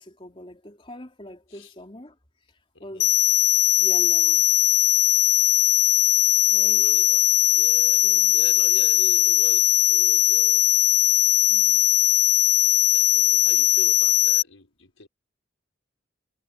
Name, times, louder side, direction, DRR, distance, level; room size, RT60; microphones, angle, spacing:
voice 1, 0.0-2.1 2.8-3.2 3.8-4.5 6.5-6.8 8.0-8.3 11.5-11.8, left 1 dB, 25° left, 3.4 m, -42 dB
voice 2, 2.7-3.1 6.6-10.7 12.6-15.1, left 2 dB, 90° left, 5.8 m, -43 dB
sound 1, 3.0-14.4, left 15 dB, 50° left, 0.4 m, -19 dB
head